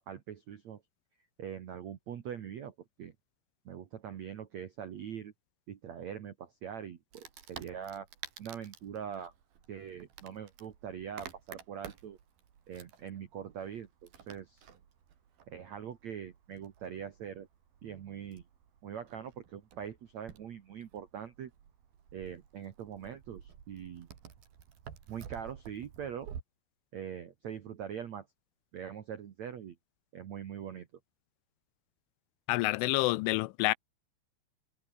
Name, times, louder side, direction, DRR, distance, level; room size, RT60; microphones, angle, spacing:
voice 1, 0.1-0.8 1.4-3.1 3.6-5.3 5.7-8.1 8.4-9.3 9.7-12.2 12.7-14.7 15.5-17.5 17.8-18.4 18.8-21.5 22.1-24.1 25.1-26.3 26.9-28.3 28.7-29.7 30.1-30.9, right 8 dB, 75° right, 1.6 m, -42 dB
Wood, 7.1-26.4, right 8 dB, 55° right, 4.3 m, -52 dB
voice 2, 32.5-33.7, left 22 dB, 85° left, 3.1 m, -28 dB
omnidirectional pair, 5.5 m